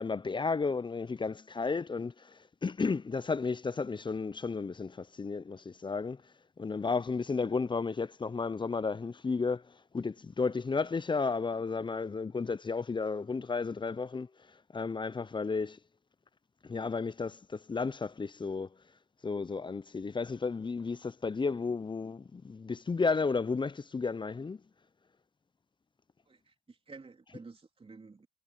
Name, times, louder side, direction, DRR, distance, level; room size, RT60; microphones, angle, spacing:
voice 1, 0.0-6.2 6.6-14.3 14.7-15.8 16.6-18.7 19.2-24.6, left 4 dB, 25° left, 0.7 m, -33 dB
voice 2, 26.3-28.3, right 4 dB, 35° right, 3.7 m, -51 dB
supercardioid pair, 50°, 17 cm